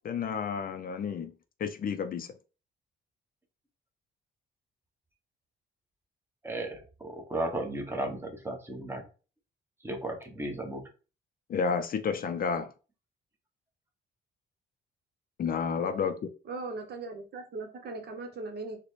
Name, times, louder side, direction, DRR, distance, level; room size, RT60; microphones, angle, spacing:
voice 1, 0.0-1.3 1.6-2.3 11.5-12.7 15.4-16.3, left 6 dB, 45° left, 9 dB, 0.4 m, -31 dB
voice 2, 6.4-9.0 9.8-10.8, right 1 dB, 10° right, 2 dB, 1.0 m, -35 dB
voice 3, 16.5-18.8, right 3 dB, 55° right, 4 dB, 0.9 m, -39 dB
3.9 x 2.2 x 3.2 m, 0.34 s
cardioid pair, 90°, 20 cm